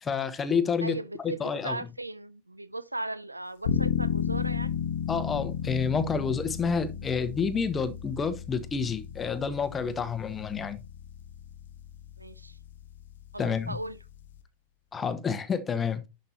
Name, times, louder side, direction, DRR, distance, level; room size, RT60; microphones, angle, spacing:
voice 1, 0.0-1.8 5.1-10.8 13.4-13.8 14.9-16.0, left 6 dB, 20° left, 1.2 m, -29 dB
voice 2, 0.8-4.7 12.2-12.6 13.3-14.0, right 2 dB, 85° right, 0.5 m, -37 dB
sound 1, 3.6-14.4, left 8 dB, 60° left, 1.1 m, -34 dB
11.0 x 5.4 x 2.8 m
figure-of-eight pair, 90°, 0 cm